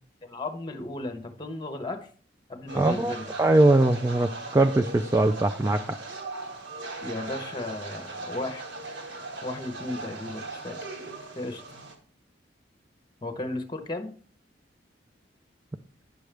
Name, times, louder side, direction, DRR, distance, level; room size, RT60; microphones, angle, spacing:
voice 1, 0.2-2.1 2.5-3.3 7.0-8.6 9.4-10.8 11.3-11.6 13.2-14.1, left 2 dB, 25° left, 7 dB, 0.8 m, -35 dB
voice 2, 2.7-3.1 3.4-6.0, right 2 dB, 15° right, 6 dB, 0.3 m, -21 dB
sound 1, 2.7-12.0, right 3 dB, 70° right, 1.5 m, -39 dB
9.5 x 6.3 x 3.3 m, 0.43 s
head